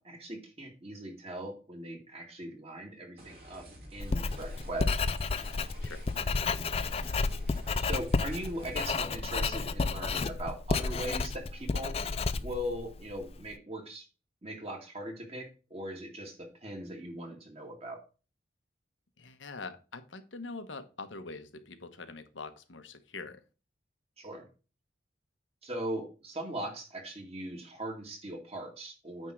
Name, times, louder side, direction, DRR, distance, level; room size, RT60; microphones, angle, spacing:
voice 1, 0.0-3.7 3.9-4.9 7.8-12.0 12.4-14.1 14.4-18.0 24.2-24.5 25.6-29.3, right 1 dB, 30° right, 2 dB, 2.1 m, -39 dB
sound 1, 3.2-9.0, right 1 dB, 50° right, 2.9 m, -50 dB
Writing, 4.0-13.4, left 4 dB, 30° left, 0.4 m, -31 dB
voice 2, 19.2-23.4, left 3 dB, 90° left, 9 dB, 1.2 m, -44 dB
9.2 x 3.6 x 6.3 m, 0.33 s
head